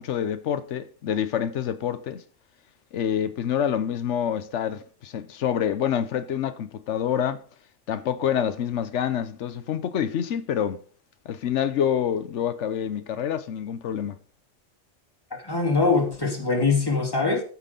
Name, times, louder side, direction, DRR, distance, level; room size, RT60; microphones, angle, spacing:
voice 1, 0.0-2.2 2.9-7.4 7.9-10.8 11.2-14.2, left 9 dB, 90° left, 1.1 m, -27 dB
voice 2, 15.3-17.4, left 4 dB, 20° left, 2.5 m, -23 dB
14.5 x 6.2 x 5.2 m
omnidirectional pair, 1.2 m